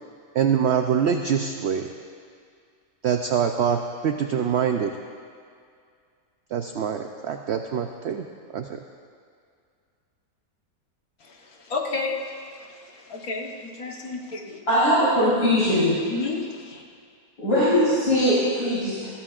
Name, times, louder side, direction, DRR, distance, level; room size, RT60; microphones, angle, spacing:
voice 1, 0.3-1.9 3.0-4.9 6.5-8.3 8.5-8.8, right 7 dB, 65° right, 5 dB, 0.6 m, -24 dB
voice 2, 11.2-14.6 16.1-16.8, left 3 dB, 65° left, 0 dB, 1.7 m, -32 dB
voice 3, 14.7-16.0 17.4-19.1, equal, 80° left, -12 dB, 4.7 m, -20 dB
21.0 x 15.0 x 2.5 m, 2.2 s
omnidirectional pair, 1.7 m